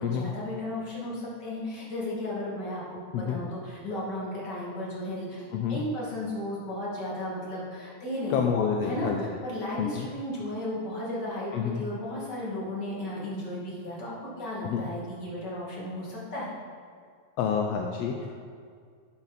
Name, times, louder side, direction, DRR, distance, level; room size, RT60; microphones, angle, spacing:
voice 1, 0.0-8.4 8.8-16.5, left 1 dB, 35° left, -5 dB, 2.8 m, -34 dB
voice 2, 8.3-9.2 9.8-10.1 11.5-11.8 14.6-14.9 17.4-18.4, left 7 dB, 75° left, 2 dB, 1.5 m, -28 dB
11.0 x 8.1 x 4.2 m, 2.2 s
omnidirectional pair, 3.4 m